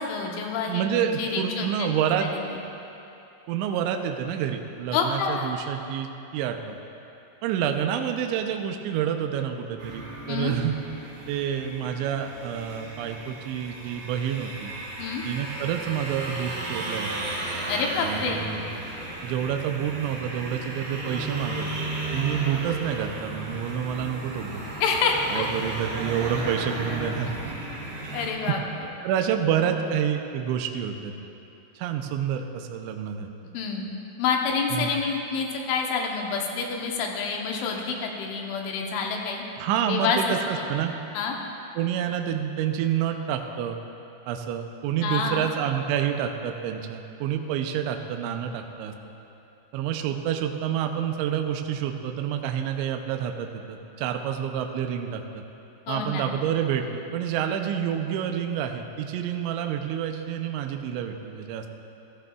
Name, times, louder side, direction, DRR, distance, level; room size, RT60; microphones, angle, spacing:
voice 1, 0.0-0.8 1.2-1.9 2.2-2.4 4.9-5.5 10.3-10.5 15.0-15.3 17.7-18.4 24.8-25.5 28.1-28.6 33.5-33.9 34.2-39.4 39.9-40.7 41.1-41.4 45.0-45.5 55.9-56.3, left 5 dB, 80° left, 1 dB, 3.3 m, -27 dB
voice 2, 0.7-2.3 3.5-6.8 7.4-10.8 11.3-14.7 15.2-17.1 18.0-18.7 19.2-21.7 22.1-24.6 25.3-27.7 28.0-28.1 28.5-28.6 29.0-31.3 31.8-33.3 34.7-34.9 39.6-40.9 41.8-43.8 44.3-48.9 49.7-55.4 55.9-61.7, right 9 dB, 80° right, 5 dB, 2.8 m, -28 dB
sound 1, 9.8-28.3, right 2 dB, 60° right, 3.2 m, -35 dB
15.0 x 14.0 x 2.3 m, 2.8 s
omnidirectional pair, 5.6 m